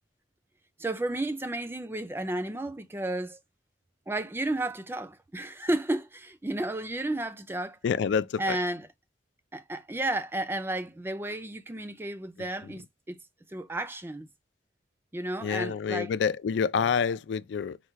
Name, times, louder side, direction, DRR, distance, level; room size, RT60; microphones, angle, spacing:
voice 1, 0.8-3.4 4.1-7.8 8.4-8.9 9.5-13.2 13.5-14.3 15.1-16.1, right 1 dB, 10° right, 0.3 m, -32 dB
voice 2, 7.8-8.6 15.4-17.8, left 6 dB, 70° left, 0.3 m, -27 dB
4.4 x 2.2 x 4.4 m
head